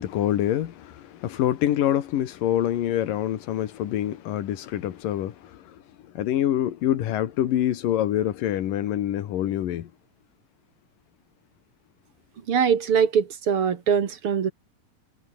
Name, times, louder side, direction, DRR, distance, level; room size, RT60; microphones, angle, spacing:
voice 1, 0.0-9.9, left 12 dB, 90° left, 3.2 m, -26 dB
voice 2, 12.5-14.5, right 7 dB, 50° right, 2.3 m, -22 dB
omnidirectional pair, 3.8 m